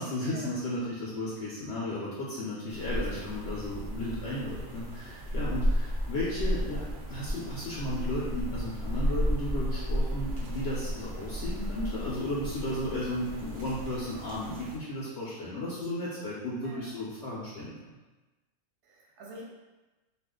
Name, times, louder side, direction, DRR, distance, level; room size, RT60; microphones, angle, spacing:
voice 1, 0.0-17.7, left 1 dB, 65° left, -6 dB, 0.8 m, -34 dB
sound 1, 2.7-14.8, equal, 70° right, 0.5 m, -33 dB
voice 2, 2.9-3.3 16.6-16.9 18.8-19.4, right 2 dB, 50° right, -4 dB, 0.9 m, -46 dB
2.4 x 2.4 x 3.6 m, 1.1 s
omnidirectional pair, 1.5 m